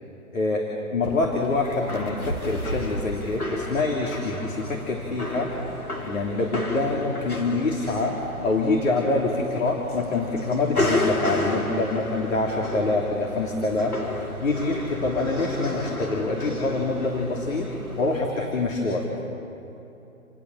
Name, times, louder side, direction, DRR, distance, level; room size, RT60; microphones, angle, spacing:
voice 1, 0.3-5.7 6.0-17.7 18.0-19.0, left 3 dB, 65° left, 0 dB, 3.2 m, -26 dB
sound 1, 1.0-18.2, left 1 dB, 90° left, 3.4 m, -32 dB
29.5 x 20.0 x 7.5 m, 2.9 s
figure-of-eight pair, 130°, 43 cm